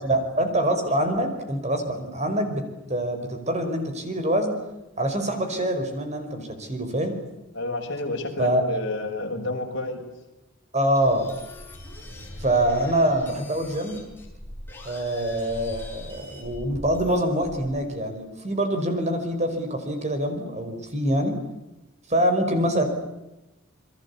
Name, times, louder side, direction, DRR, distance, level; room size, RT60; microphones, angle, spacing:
voice 1, 0.0-2.6 2.9-4.6 5.0-7.2 8.4-8.6 10.7-11.3 12.4-14.0 14.9-21.4 22.1-22.8, right 1 dB, 30° right, 6 dB, 5.3 m, -25 dB
voice 2, 7.5-10.0, left 2 dB, 55° left, 3 dB, 6.3 m, -30 dB
sound 1, 10.9-17.7, left 1 dB, 10° left, 7.7 m, -41 dB
29.0 x 22.5 x 8.6 m, 0.97 s
head